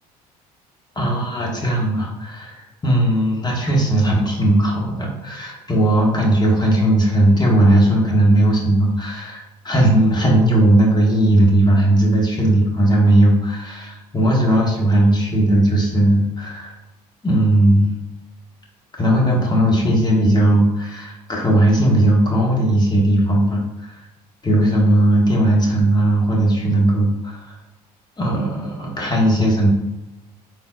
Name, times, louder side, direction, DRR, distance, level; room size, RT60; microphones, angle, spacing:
voice 1, 0.9-16.7 17.2-17.9 19.0-24.0 24.4-27.5 28.2-29.7, right 1 dB, 20° left, -2 dB, 1.5 m, -17 dB
4.5 x 3.8 x 2.4 m, 0.99 s
hypercardioid pair, 65°, 20 cm